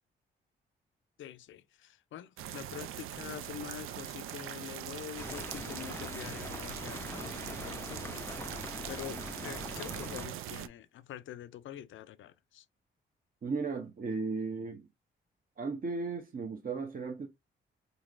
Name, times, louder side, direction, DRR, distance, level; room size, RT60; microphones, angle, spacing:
voice 1, 1.2-12.7, left 11 dB, 65° left, 0.5 m, -46 dB
sound 1, 2.4-10.7, right 11 dB, 80° right, 0.4 m, -42 dB
sound 2, 5.2-10.3, left 2 dB, 10° left, 0.4 m, -43 dB
voice 2, 13.4-14.9 15.6-17.3, right 4 dB, 45° right, 0.8 m, -35 dB
3.9 x 3.0 x 2.5 m
supercardioid pair, 55°, 21 cm